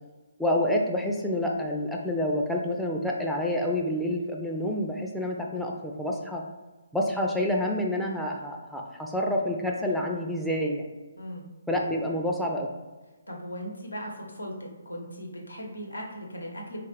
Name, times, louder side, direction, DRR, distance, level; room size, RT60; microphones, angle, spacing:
voice 1, 0.4-6.4 6.9-10.9 11.7-12.7, left 1 dB, ahead, -2 dB, 0.3 m, -28 dB
voice 2, 11.2-11.5 12.6-12.7 13.3-14.5 14.8-16.8, equal, 85° left, -1 dB, 0.9 m, -38 dB
4.1 x 2.4 x 3.1 m, 1.2 s
figure-of-eight pair, 140°, 0 cm